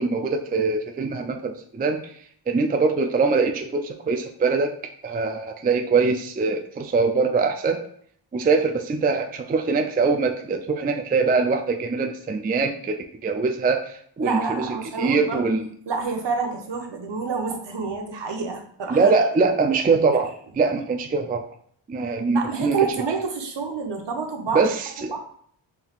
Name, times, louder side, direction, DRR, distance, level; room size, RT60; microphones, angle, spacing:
voice 1, 0.0-2.1 2.5-4.7 5.0-7.8 8.3-13.0 13.2-14.7 15.0-15.6 18.9-21.5 21.9-22.9 24.5-25.1, right 4 dB, 20° right, 4 dB, 0.3 m, -23 dB
voice 2, 14.2-15.5 15.9-19.1 22.3-24.7 25.1-25.2, right 5 dB, 60° right, 3 dB, 0.9 m, -28 dB
4.3 x 3.5 x 2.4 m, 0.62 s
cardioid pair, 55°, 48 cm